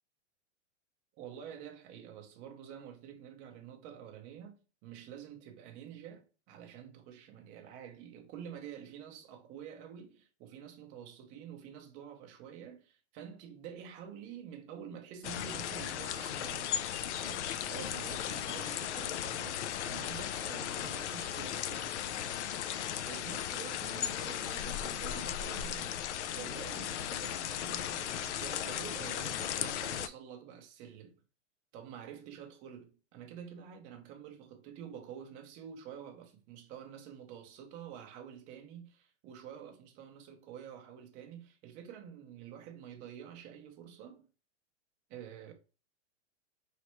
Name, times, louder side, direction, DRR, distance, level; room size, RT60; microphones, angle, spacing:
voice 1, 1.2-16.8 17.2-22.0 23.0-31.2 31.7-44.3 45.1-45.5, right 8 dB, 20° right, 0.6 m, -48 dB
sound 1, 15.2-30.1, left 10 dB, 70° left, 0.5 m, -36 dB
4.1 x 3.2 x 2.9 m
hypercardioid pair, 155°, 36 cm